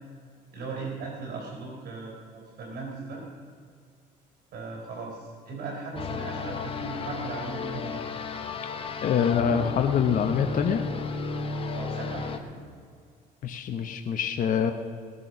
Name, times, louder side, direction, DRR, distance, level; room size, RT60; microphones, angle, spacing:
voice 1, 0.5-3.2 4.5-8.0 11.7-12.6, right 4 dB, 60° right, -1 dB, 4.4 m, -37 dB
sound 1, 6.0-12.4, left 4 dB, 35° left, 1.2 m, -33 dB
voice 2, 9.0-10.8 13.4-14.7, left 7 dB, 50° left, 5 dB, 1.0 m, -25 dB
18.5 x 6.9 x 6.8 m, 2.1 s
cardioid pair, 110°, 17 cm